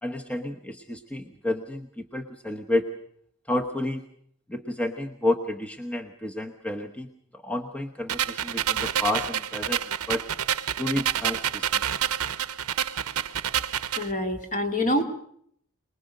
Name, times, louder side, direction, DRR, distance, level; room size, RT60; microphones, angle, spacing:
voice 1, 0.0-2.9 3.5-4.0 4.5-10.3 10.8-11.9, left 1 dB, 5° left, 3 dB, 1.0 m, -30 dB
sound 1, 8.1-14.1, right 9 dB, 80° right, 0.8 m, -28 dB
voice 2, 14.0-15.0, left 1 dB, 35° left, 4 dB, 2.8 m, -26 dB
24.0 x 20.5 x 6.6 m, 0.66 s
head